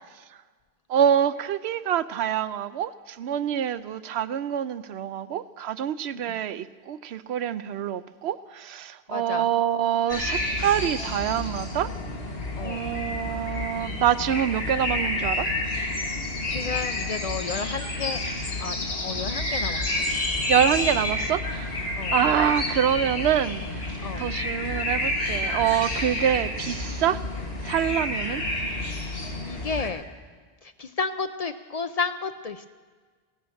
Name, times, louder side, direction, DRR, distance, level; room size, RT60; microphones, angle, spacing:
voice 1, 0.9-11.9 12.6-15.5 20.5-27.2 27.6-28.4, right 9 dB, 75° right, 14 dB, 0.8 m, -26 dB
voice 2, 9.1-9.5 12.5-12.8 16.5-18.2 18.6-19.9 22.0-22.2 24.0-24.2 29.1-30.0 30.6-32.7, left 5 dB, 50° left, 10 dB, 0.5 m, -32 dB
sound 1, 10.1-29.9, left 2 dB, 65° left, 2.1 m, -29 dB
16.5 x 11.0 x 6.3 m, 1.5 s
omnidirectional pair, 1.1 m